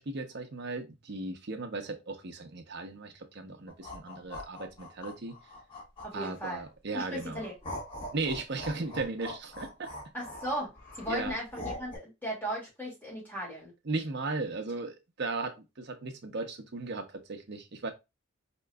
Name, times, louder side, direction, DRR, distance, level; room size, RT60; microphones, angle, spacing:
voice 1, 0.0-5.4 6.1-7.4 8.1-9.9 11.1-11.3 13.8-17.9, right 3 dB, 60° right, 0.7 m, -36 dB
sound 1, 3.7-6.7 7.1-12.0, left 1 dB, 25° left, 1.8 m, -42 dB
voice 2, 6.0-6.6 6.9-7.5 10.1-13.7, equal, 10° left, 2.2 m, -37 dB
4.4 x 2.9 x 2.3 m
head